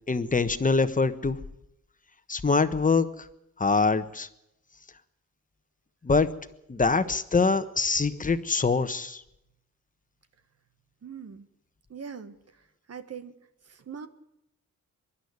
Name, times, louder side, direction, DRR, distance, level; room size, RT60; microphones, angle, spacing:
voice 1, 0.1-1.4 2.3-3.3 3.6-4.3 6.0-6.3 6.7-9.2, left 4 dB, 25° left, 12 dB, 1.3 m, -24 dB
voice 2, 11.0-11.5 11.9-13.4 13.6-14.1, right 6 dB, 55° right, 10 dB, 1.5 m, -42 dB
23.5 x 11.5 x 9.6 m, 0.84 s
wide cardioid pair, 100°, 29 cm